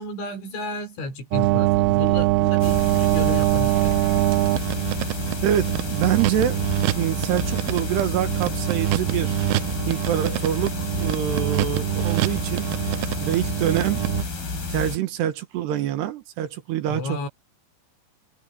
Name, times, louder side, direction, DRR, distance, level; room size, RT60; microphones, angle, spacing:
voice 1, 0.0-4.0 16.9-17.3, left 2 dB, 90° left, 8.3 m, -32 dB
sound 1, 1.3-14.2, right 18 dB, 90° right, 2.3 m, -24 dB
sound 2, 2.6-15.0, left 4 dB, 55° left, 8.4 m, -30 dB
voice 2, 5.4-6.6 7.0-9.3 9.8-12.7 13.2-14.0 14.7-17.3, right 11 dB, 70° right, 3.4 m, -25 dB
omnidirectional pair, 5.3 m